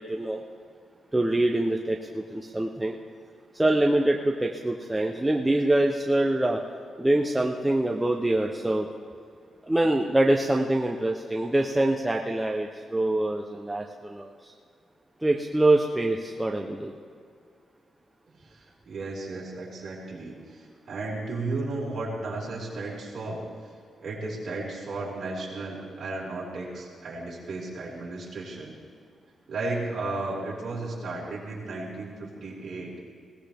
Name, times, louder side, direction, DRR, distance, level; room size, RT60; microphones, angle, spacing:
voice 1, 1.1-3.0 3.6-6.6 7.0-8.9 9.7-14.3 15.2-16.9, right 1 dB, 5° right, 1 dB, 0.7 m, -24 dB
voice 2, 18.4-23.4 24.0-28.7 29.5-32.9, right 2 dB, 45° right, -5 dB, 4.9 m, -34 dB
21.0 x 18.0 x 3.5 m, 2.3 s
wide cardioid pair, 180°, 0 cm